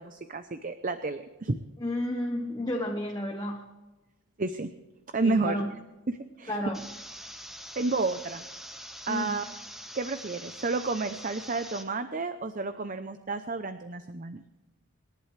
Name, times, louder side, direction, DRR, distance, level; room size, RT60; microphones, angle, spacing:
voice 1, 0.0-1.6 4.4-4.7 5.1-5.6 6.1-6.6 7.8-8.4 9.1-9.5 9.9-14.4, right 3 dB, 40° right, 9 dB, 0.6 m, -31 dB
voice 2, 1.8-3.6 5.2-5.7 6.5-6.8 9.1-9.4, left 1 dB, 20° left, 1 dB, 1.1 m, -31 dB
sound 1, 6.7-11.8, equal, ahead, 1.2 m, -44 dB
27.0 x 11.0 x 3.3 m, 1.1 s
head